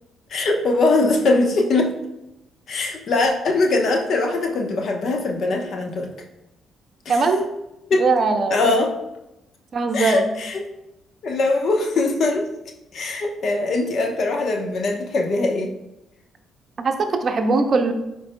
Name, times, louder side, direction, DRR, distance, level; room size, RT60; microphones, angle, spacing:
voice 1, 0.3-1.9 2.7-6.1 7.0-7.1 7.9-8.0 8.5-8.9 9.9-10.7 11.2-12.5 12.9-15.7, left 2 dB, 60° left, 2 dB, 1.0 m, -21 dB
voice 2, 7.1-7.5 8.0-8.7 9.7-10.3 16.8-17.9, right 4 dB, 45° right, 6 dB, 0.7 m, -20 dB
10.0 x 4.6 x 2.2 m, 0.93 s
cardioid pair, 85°, 0 cm